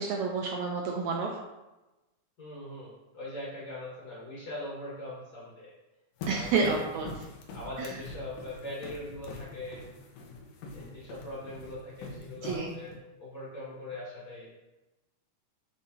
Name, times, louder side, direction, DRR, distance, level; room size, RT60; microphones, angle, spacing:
voice 1, 0.0-1.4 6.3-7.1 7.8-8.0 12.4-12.7, right 4 dB, 75° right, 0 dB, 1.8 m, -29 dB
voice 2, 2.4-5.7 6.3-6.8 7.5-9.8 10.7-12.9 13.2-14.5, left 1 dB, 40° left, -7 dB, 2.3 m, -41 dB
sound 1, 6.2-13.0, left 3 dB, 90° left, 2.5 m, -43 dB
8.3 x 5.0 x 2.8 m, 1.0 s
omnidirectional pair, 3.7 m